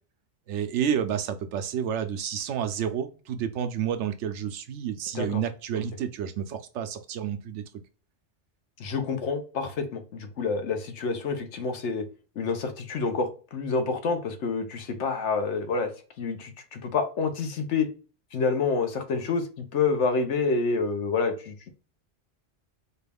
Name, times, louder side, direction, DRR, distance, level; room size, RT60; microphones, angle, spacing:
voice 1, 0.5-7.6, right 8 dB, 85° right, 8 dB, 0.9 m, -30 dB
voice 2, 8.8-12.1 12.4-15.9 16.2-17.9 18.3-21.7, left 4 dB, 80° left, 6 dB, 1.1 m, -28 dB
4.4 x 2.3 x 3.4 m, 0.37 s
omnidirectional pair, 1.2 m